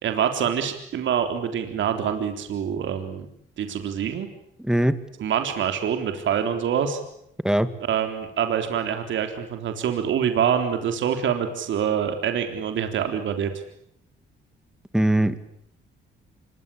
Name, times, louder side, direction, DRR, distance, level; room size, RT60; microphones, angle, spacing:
voice 1, 0.0-3.3 3.6-4.3 5.2-7.0 7.9-13.5, right 8 dB, 70° right, 7 dB, 3.8 m, -25 dB
voice 2, 4.6-5.0 7.4-7.7 14.9-15.4, right 1 dB, 5° right, 12 dB, 2.4 m, -20 dB
26.5 x 23.0 x 8.6 m, 0.76 s
cardioid pair, 90°, 20 cm